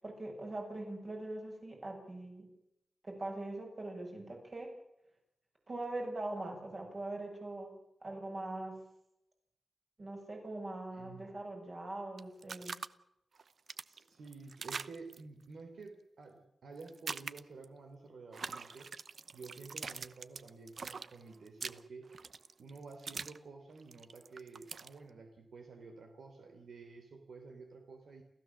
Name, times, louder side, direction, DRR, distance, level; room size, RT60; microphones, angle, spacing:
voice 1, 0.0-2.5 3.0-4.7 5.7-7.8 8.0-8.8 10.0-12.8, right 2 dB, 35° right, 1 dB, 7.7 m, -42 dB
voice 2, 10.9-11.3 13.9-18.9 19.3-22.1 22.6-28.2, right 4 dB, 75° right, 5 dB, 3.5 m, -51 dB
sound 1, 12.2-12.9 13.3-15.2 16.8-17.6 18.3-23.4 23.7-24.9, right 5 dB, 55° right, 0.8 m, -43 dB
29.0 x 15.0 x 7.5 m, 0.83 s
wide cardioid pair, 155°, 0 cm